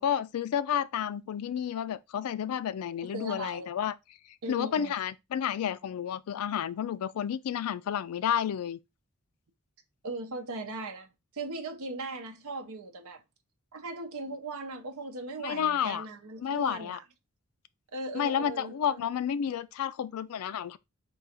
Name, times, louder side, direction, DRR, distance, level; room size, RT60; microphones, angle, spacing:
voice 1, 0.0-3.9 4.5-8.8 15.4-16.1 16.4-17.0 18.1-20.8, left 9 dB, 80° left, 0.3 m, -31 dB
voice 2, 3.1-3.7 4.4-4.9 10.0-13.2 13.7-17.0 17.9-19.1, right 2 dB, 80° right, 0.7 m, -38 dB
3.8 x 2.3 x 4.1 m
head